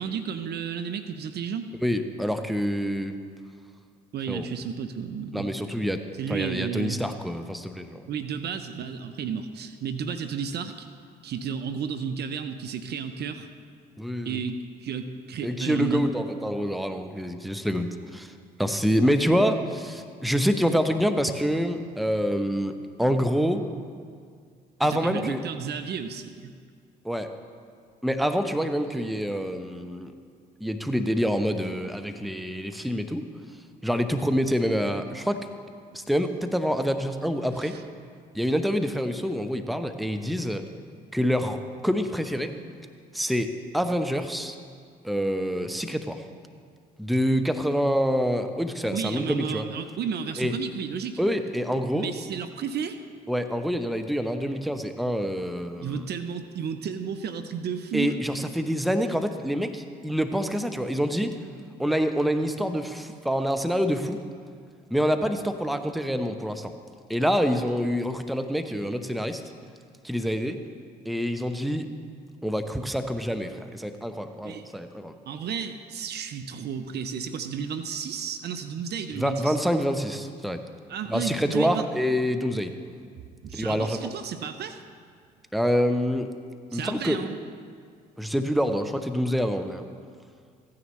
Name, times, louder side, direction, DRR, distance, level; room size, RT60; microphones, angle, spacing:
voice 1, 0.0-1.7 4.1-5.5 6.2-7.0 8.1-10.9 11.2-13.5 14.2-16.1 24.8-26.5 37.6-37.8 48.9-51.2 51.9-53.0 55.8-58.2 74.4-74.7 75.3-79.6 80.9-81.8 83.4-84.8 86.7-87.4, right 7 dB, 55° right, 9 dB, 0.7 m, -32 dB
voice 2, 1.8-3.1 4.3-4.5 5.3-6.0 6.3-8.0 14.0-14.4 15.4-18.3 18.6-23.6 24.8-25.4 27.0-27.3 28.0-30.1 30.6-33.3 33.8-35.5 35.9-37.7 38.3-40.6 41.1-42.5 43.1-44.6 45.0-46.2 47.0-49.7 50.4-50.5 51.2-52.1 53.3-56.0 57.9-61.4 61.8-64.2 64.9-66.7 67.1-69.4 70.0-70.6 71.0-71.9 72.4-75.1 79.2-80.6 81.1-82.7 83.5-84.1 85.5-86.3 86.7-87.2 88.2-89.8, equal, ahead, 7 dB, 0.8 m, -26 dB
15.5 x 9.7 x 3.2 m, 2.1 s
hypercardioid pair, 50°, 20 cm